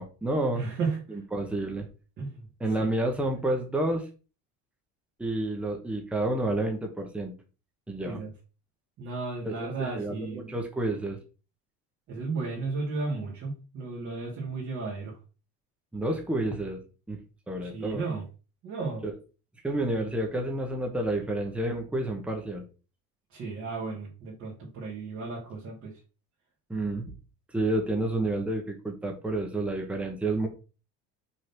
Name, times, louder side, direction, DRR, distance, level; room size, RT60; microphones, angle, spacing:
voice 1, 0.0-0.6 1.1-1.9 2.6-4.0 5.2-7.3 7.9-8.2 9.4-11.2 15.9-16.8 17.1-17.2 17.5-18.0 19.0-19.1 19.6-22.7 26.7-27.1 27.5-30.5, right 2 dB, 5° right, 2 dB, 1.1 m, -29 dB
voice 2, 0.5-1.2 2.2-2.5 8.0-8.3 9.0-10.5 12.1-15.2 17.6-18.2 18.6-19.0 23.3-25.9, right 3 dB, 40° right, -5 dB, 2.8 m, -34 dB
6.1 x 3.9 x 6.0 m, 0.34 s
cardioid pair, 170°, 33 cm